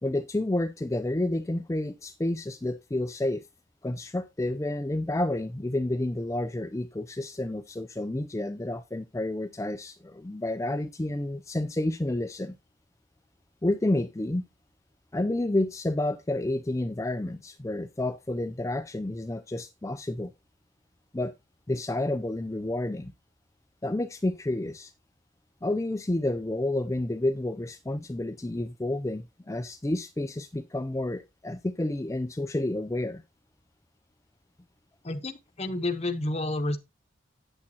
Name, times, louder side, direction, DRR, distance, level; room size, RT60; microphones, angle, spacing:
voice 1, 0.0-3.5 3.8-12.6 13.6-14.5 15.1-20.3 21.1-21.3 21.7-23.1 23.8-24.9 25.6-33.2, left 1 dB, 15° left, 0.4 m, -30 dB
voice 2, 35.0-36.8, left 2 dB, 30° left, 0.8 m, -30 dB
8.6 x 8.5 x 2.8 m
head